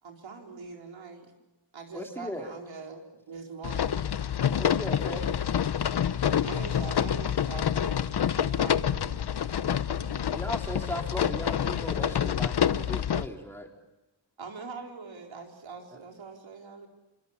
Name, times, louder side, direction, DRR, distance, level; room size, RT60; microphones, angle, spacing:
voice 1, 0.0-1.3 1.7-4.1 6.4-8.9 9.6-9.7 14.4-16.9, right 4 dB, 75° right, 1 dB, 4.4 m, -42 dB
voice 2, 1.9-2.5 4.6-5.3 10.3-13.7, left 1 dB, 5° left, 1 dB, 3.9 m, -37 dB
sound 1, 3.6-13.3, left 9 dB, 55° left, 0.9 m, -27 dB
voice 3, 8.4-10.5, right 8 dB, 55° right, 9 dB, 1.0 m, -50 dB
28.5 x 24.5 x 7.3 m, 0.95 s
wide cardioid pair, 135°, 46 cm